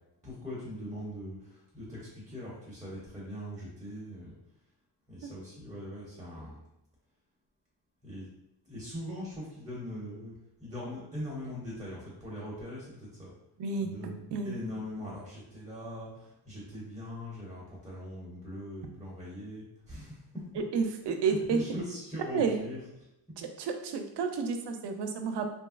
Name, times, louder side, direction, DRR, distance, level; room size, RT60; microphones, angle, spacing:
voice 1, 0.2-4.3 5.1-6.6 8.0-8.3 8.7-10.3 10.6-13.3 13.8-20.4 21.2-22.8, left 1 dB, 10° right, -6 dB, 0.6 m, -41 dB
voice 2, 13.6-13.9 14.3-14.6 20.7-21.6 22.3-22.6 23.4-25.5, right 5 dB, 75° right, 6 dB, 0.5 m, -30 dB
2.9 x 2.5 x 2.4 m, 0.87 s
wide cardioid pair, 160°, 42 cm